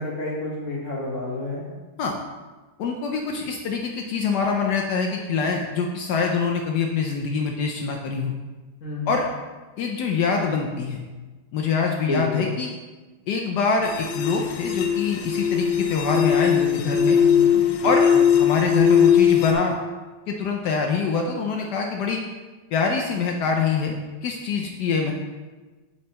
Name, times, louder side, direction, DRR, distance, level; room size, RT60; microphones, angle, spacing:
voice 1, 0.0-1.6 8.8-9.2 12.0-12.5 17.2-18.2, left 2 dB, 45° left, -5 dB, 1.4 m, -30 dB
voice 2, 2.8-8.3 9.1-9.3 9.8-11.0 11.5-12.7 13.3-17.2 17.8-18.1 18.3-19.8 20.3-22.2 22.7-25.1, left 5 dB, 75° left, 1 dB, 1.0 m, -24 dB
sound 1, 13.8-19.5, left 7 dB, 90° left, 1.4 m, -20 dB
8.4 x 4.4 x 2.9 m, 1.3 s
omnidirectional pair, 2.2 m